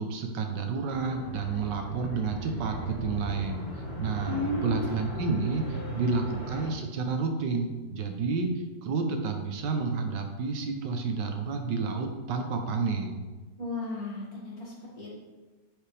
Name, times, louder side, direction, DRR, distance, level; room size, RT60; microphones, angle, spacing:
voice 1, 0.0-8.5 8.8-13.1, right 4 dB, 75° right, 4 dB, 1.5 m, -30 dB
sound 1, 0.9-6.7, right 1 dB, 35° left, 2.3 m, -37 dB
voice 2, 4.3-4.8 5.6-6.1 13.6-15.2, left 2 dB, 55° left, -5 dB, 2.6 m, -35 dB
10.5 x 5.0 x 3.4 m, 1.2 s
omnidirectional pair, 1.9 m